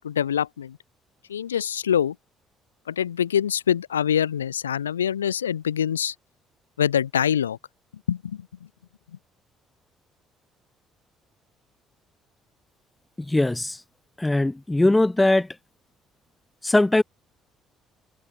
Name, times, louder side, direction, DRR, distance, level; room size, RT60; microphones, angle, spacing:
voice 1, 0.0-0.8 1.3-2.2 2.9-6.1 6.8-7.6 8.1-8.5, left 9 dB, 80° left, 0.5 m, -24 dB
voice 2, 13.3-13.8 14.2-15.5 16.6-17.0, left 2 dB, 10° left, 0.5 m, -20 dB
figure-of-eight pair, 50°, 0 cm